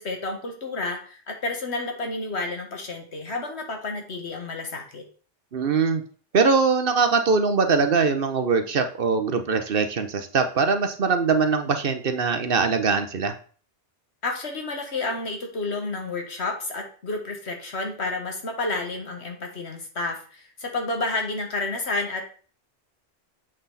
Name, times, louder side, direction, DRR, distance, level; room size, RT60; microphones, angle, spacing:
voice 1, 0.0-5.0 14.2-22.3, left 3 dB, 75° left, 3 dB, 1.9 m, -30 dB
voice 2, 5.5-6.0 6.3-13.3, right 4 dB, 55° right, 8 dB, 1.0 m, -22 dB
7.8 x 6.0 x 4.1 m, 0.41 s
omnidirectional pair, 1.1 m